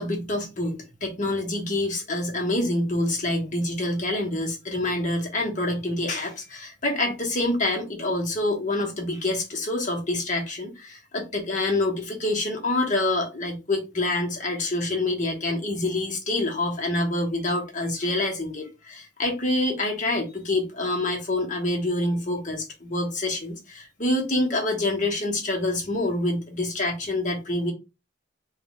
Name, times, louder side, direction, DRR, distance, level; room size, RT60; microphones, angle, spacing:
voice 1, 0.0-27.7, left 2 dB, 40° left, 1.3 m, -26 dB
3.5 x 2.6 x 4.4 m
head